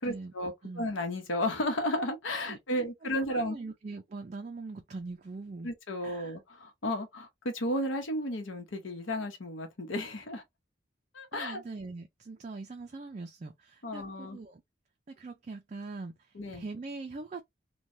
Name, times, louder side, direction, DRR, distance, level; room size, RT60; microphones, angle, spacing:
voice 1, 0.0-3.6 5.6-10.4 11.1-11.6 13.8-14.4 16.4-16.6, left 1 dB, 85° left, 0.9 m, -33 dB
voice 2, 2.5-5.7 6.0-6.4 11.3-14.6 15.1-17.4, right 3 dB, 35° right, 0.3 m, -42 dB
3.1 x 2.2 x 2.6 m
head